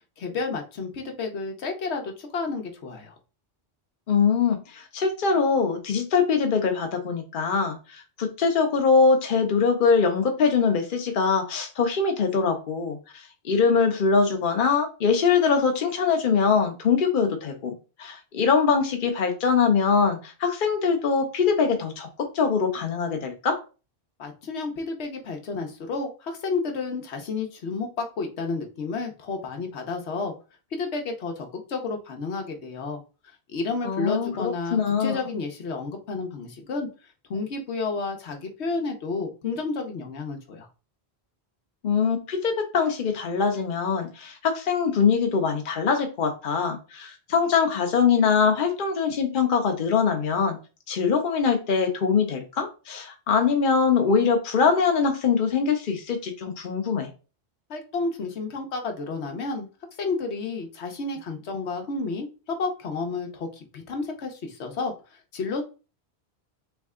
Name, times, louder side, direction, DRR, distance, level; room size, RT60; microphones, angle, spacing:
voice 1, 0.2-3.1 24.2-30.3 30.7-36.9 37.3-40.7 57.7-59.7 60.0-65.6, left 4 dB, 85° left, 4 dB, 1.2 m, -31 dB
voice 2, 4.1-17.7 18.0-23.6 33.8-35.2 41.8-50.6 50.9-57.1, left 5 dB, 55° left, 4 dB, 0.9 m, -23 dB
3.5 x 3.2 x 3.6 m, 0.33 s
omnidirectional pair, 1.1 m